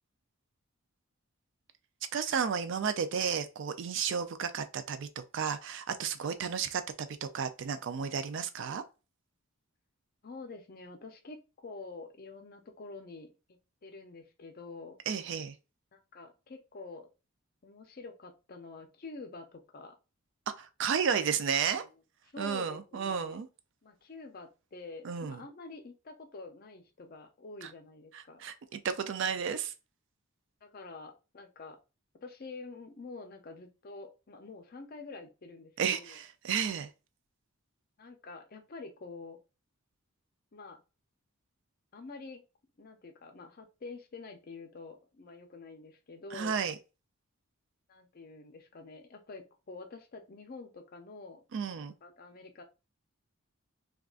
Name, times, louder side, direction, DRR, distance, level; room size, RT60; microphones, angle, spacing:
voice 1, 2.1-8.8 15.1-15.6 20.6-21.8 22.4-23.5 25.0-25.4 27.6-27.7 28.1-29.7 35.8-36.9 46.3-46.8 51.5-51.9, right 7 dB, 55° right, 0.4 m, -33 dB
voice 2, 10.2-15.0 15.9-17.1 17.6-20.0 21.8-21.9 22.3-23.4 23.8-28.5 30.6-31.8 32.2-36.2 38.0-39.4 40.5-40.8 41.9-42.4 42.8-46.6 47.9-51.4 52.0-52.6, left 3 dB, 45° left, 0.5 m, -47 dB
3.6 x 2.3 x 2.4 m
head